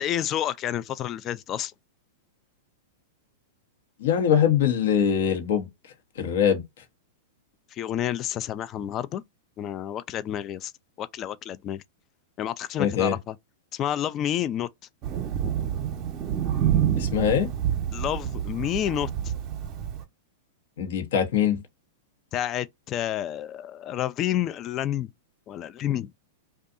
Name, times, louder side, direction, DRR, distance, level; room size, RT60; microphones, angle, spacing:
voice 1, 0.0-1.7 7.7-9.2 9.6-10.7 11.0-11.8 12.4-13.4 13.7-14.7 17.9-19.1 22.3-25.1 25.5-26.1, left 11 dB, 35° left, 0.3 m, -29 dB
voice 2, 4.0-5.7 6.2-6.6 12.8-13.1 17.0-17.5 20.8-21.6, left 8 dB, 70° left, 0.9 m, -22 dB
Thunder, 15.0-20.0, right 10 dB, 40° right, 0.7 m, -28 dB
2.6 x 2.3 x 2.4 m
hypercardioid pair, 120°, 0 cm